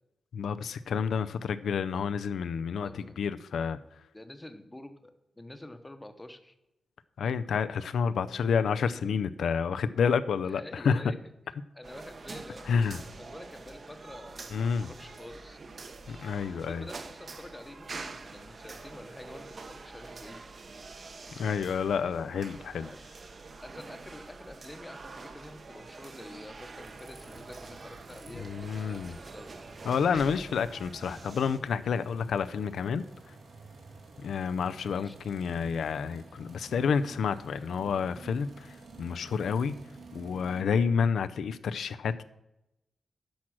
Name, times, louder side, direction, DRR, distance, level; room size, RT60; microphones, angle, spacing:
voice 1, 0.3-3.8 7.2-11.0 12.7-13.0 14.5-14.9 16.1-16.9 21.4-22.9 28.3-29.2 29.8-33.0 34.2-39.7 40.1-42.2, left 6 dB, 90° left, 12 dB, 0.4 m, -29 dB
voice 2, 2.8-3.2 4.1-6.5 10.5-11.2 11.7-12.7 13.2-15.6 16.5-20.4 22.8-23.0 23.6-29.5 34.9-35.2, left 1 dB, 10° left, 8 dB, 0.8 m, -47 dB
sound 1, 11.8-31.6, right 3 dB, 40° right, 0.8 m, -46 dB
sound 2, 26.7-40.6, right 3 dB, 85° right, 2.9 m, -50 dB
10.5 x 6.0 x 6.2 m, 0.90 s
wide cardioid pair, 160°, 0 cm